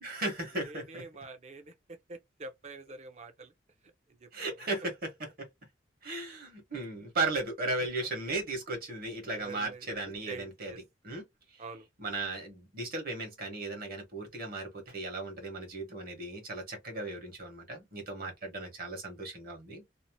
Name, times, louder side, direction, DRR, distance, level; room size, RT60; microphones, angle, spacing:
voice 1, 0.0-1.0 4.3-4.9 5.4-5.5 6.0-10.7 11.0-11.2 12.0-19.8, right 2 dB, 55° right, 1.2 m, -36 dB
voice 2, 0.5-3.5 3.8-4.3 4.8-4.9 7.8-7.9 9.3-10.8 11.6-11.9, right 3 dB, 35° right, 0.7 m, -46 dB
2.8 x 2.0 x 2.9 m
head